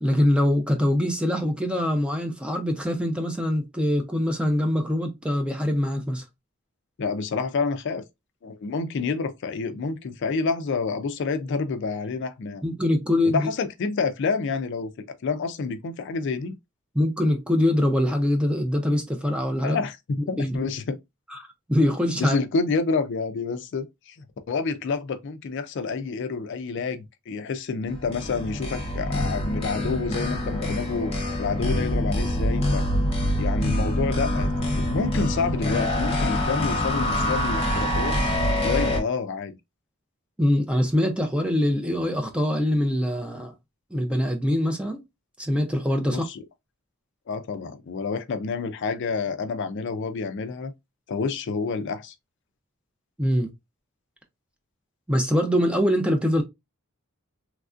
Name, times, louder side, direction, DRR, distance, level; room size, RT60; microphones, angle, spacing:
voice 1, 0.0-6.2 12.6-13.5 17.0-19.8 20.4-20.7 21.3-21.4 21.7-22.4 40.4-43.5 43.9-45.0 45.4-46.3 53.2-53.5 55.1-56.4, left 1 dB, 5° right, 0.4 m, -23 dB
voice 2, 7.0-8.0 8.4-12.6 13.3-16.5 19.6-21.0 22.2-24.2 24.5-31.1 31.4-32.8 33.4-34.5 34.8-38.2 38.6-39.5 46.1-46.4 47.3-50.7 51.1-52.1, left 4 dB, 55° left, 0.4 m, -28 dB
sound 1, 27.9-39.0, left 1 dB, 25° left, 0.9 m, -25 dB
3.2 x 2.5 x 2.4 m
head